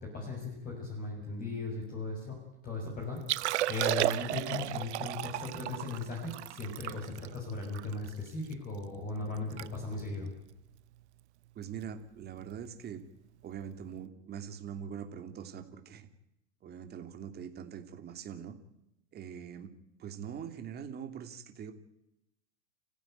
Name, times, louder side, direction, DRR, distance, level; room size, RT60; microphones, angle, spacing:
voice 1, 0.0-3.2 3.7-10.3, left 3 dB, 25° left, 0 dB, 7.1 m, -37 dB
Liquid, 3.2-8.5 9.0-9.1 9.4-9.7 9.9-10.2 10.8-11.0 12.5-12.6, right 15 dB, 85° right, 0.9 m, -34 dB
voice 2, 11.5-13.0 13.4-16.1 16.6-18.5 19.1-19.7 20.0-21.7, right 8 dB, 30° right, 7 dB, 2.9 m, -43 dB
29.5 x 15.5 x 9.3 m, 0.86 s
supercardioid pair, 130°, 33 cm